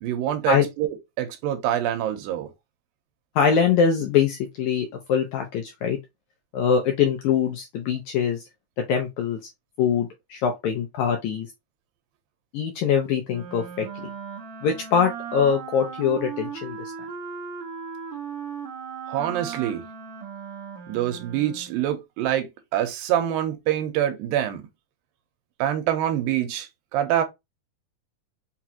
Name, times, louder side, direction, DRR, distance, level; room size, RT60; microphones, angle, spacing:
voice 1, 0.0-0.9 1.2-2.5 19.1-19.8 20.9-24.7 25.6-27.2, right 11 dB, 90° right, 2.4 m, -25 dB
voice 2, 3.3-6.0 6.5-8.4 8.9-9.4 9.8-11.5 12.5-13.9 14.6-16.8, left 7 dB, 80° left, 1.7 m, -23 dB
Wind instrument woodwind instrument, 13.3-21.8, right 7 dB, 65° right, 1.4 m, -37 dB
5.7 x 2.5 x 2.8 m
omnidirectional pair, 4.1 m